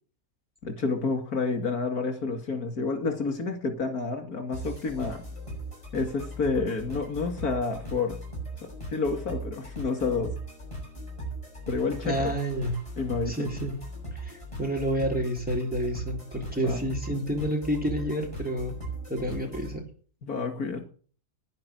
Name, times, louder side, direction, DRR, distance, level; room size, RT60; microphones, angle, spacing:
voice 1, 0.6-5.2 5.9-8.2 8.6-10.3 11.7-12.3 13.0-13.5 16.6-16.8 20.2-20.9, left 4 dB, 85° left, 5 dB, 2.9 m, -29 dB
sound 1, 4.5-19.8, right 1 dB, 20° left, 7.2 m, -39 dB
voice 2, 12.0-12.7 13.3-13.7 14.2-18.7 19.1-19.8, equal, 5° right, 0 dB, 3.7 m, -29 dB
10.5 x 10.0 x 7.8 m, 0.42 s
omnidirectional pair, 1.5 m